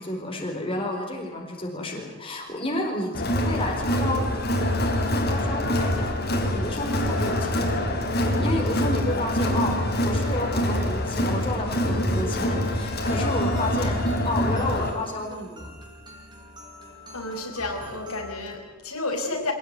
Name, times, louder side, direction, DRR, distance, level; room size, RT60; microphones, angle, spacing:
voice 1, 0.0-4.3 5.1-6.1 6.5-7.8 8.4-15.7, left 1 dB, 25° left, 1 dB, 4.6 m, -31 dB
Crowd, 3.1-14.9, left 1 dB, 45° left, 4.5 m, -25 dB
sound 1, 13.0-18.2, equal, 20° right, 4.7 m, -44 dB
voice 2, 16.4-16.8 17.1-19.5, left 2 dB, 85° left, 2 dB, 5.3 m, -32 dB
25.5 x 18.0 x 9.6 m, 1.2 s
head